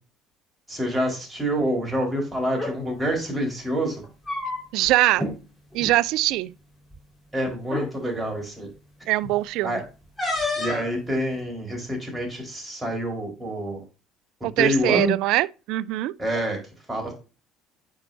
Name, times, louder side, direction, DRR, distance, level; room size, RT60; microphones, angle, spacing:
voice 1, 0.7-4.0 7.3-8.7 9.6-9.8 10.6-13.8 14.4-15.1 16.2-16.6 16.9-17.1, equal, 10° right, 4.2 m, -27 dB
sound 1, 2.5-2.7 4.0-4.9 5.2-5.3 5.7-5.9 6.9-7.0 7.6-7.9 10.2-10.9, left 2 dB, 10° left, 4.2 m, -29 dB
voice 2, 4.7-5.3 5.7-6.5 9.1-9.8 14.4-16.1, right 17 dB, 70° right, 0.4 m, -22 dB
8.7 x 5.5 x 2.6 m
hypercardioid pair, 70°, 0 cm